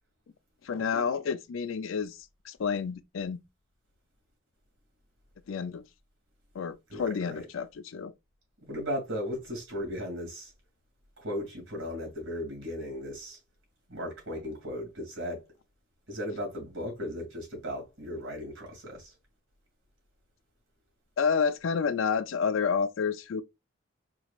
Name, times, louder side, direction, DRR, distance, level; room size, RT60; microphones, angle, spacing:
voice 1, 0.6-2.2 2.4-3.4 5.5-5.8 6.5-8.1 21.2-23.4, left 6 dB, 85° left, 0.4 m, -29 dB
voice 2, 8.6-10.5 11.2-13.4 13.9-15.5 16.1-19.1, equal, 85° right, 2.5 m, -36 dB
4.8 x 3.0 x 2.4 m
head